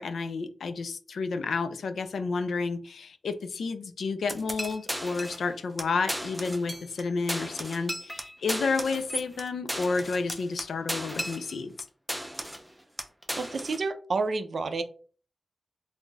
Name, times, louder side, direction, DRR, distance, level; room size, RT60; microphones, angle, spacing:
voice 1, 0.0-11.7, left 4 dB, 80° left, 10 dB, 0.3 m, -31 dB
sound 1, 4.3-5.5 5.8-5.9 6.1-7.0 7.3-11.8 12.1-12.7 13.0-13.8, equal, ahead, 0.4 m, -35 dB
voice 2, 13.4-14.8, right 3 dB, 65° right, 9 dB, 0.4 m, -29 dB
3.1 x 2.5 x 2.2 m, 0.41 s
cardioid pair, 60°, 0 cm